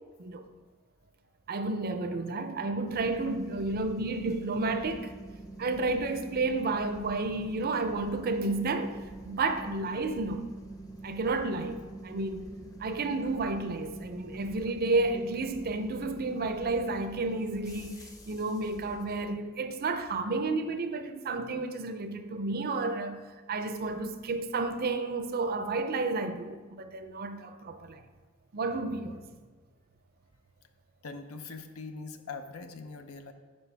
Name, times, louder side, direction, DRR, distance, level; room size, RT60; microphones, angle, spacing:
voice 1, 1.5-5.2 5.6-9.0 9.2-10.5 11.0-12.5 12.8-23.2 23.5-28.0 28.5-29.2, right 3 dB, 45° right, 0.5 m, -31 dB
sound 1, 2.9-19.2, right 2 dB, 15° left, 0.7 m, -45 dB
voice 2, 31.0-33.3, left 4 dB, 75° left, 0.7 m, -42 dB
9.7 x 5.3 x 3.3 m
head